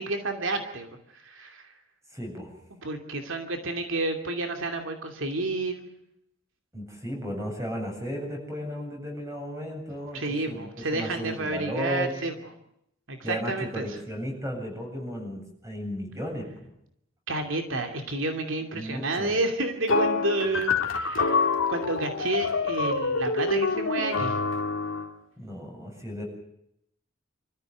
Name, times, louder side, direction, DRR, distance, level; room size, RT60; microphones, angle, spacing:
voice 1, 0.0-1.7 2.7-5.9 10.1-12.3 13.1-13.9 17.3-24.4, right 2 dB, 80° right, 5 dB, 2.7 m, -30 dB
voice 2, 2.1-2.5 6.7-12.2 13.2-16.7 18.7-19.3 25.4-26.2, equal, 15° right, 2 dB, 7.9 m, -35 dB
sound 1, 19.9-25.1, left 4 dB, 90° left, 2.1 m, -26 dB
26.5 x 14.5 x 9.2 m, 0.76 s
head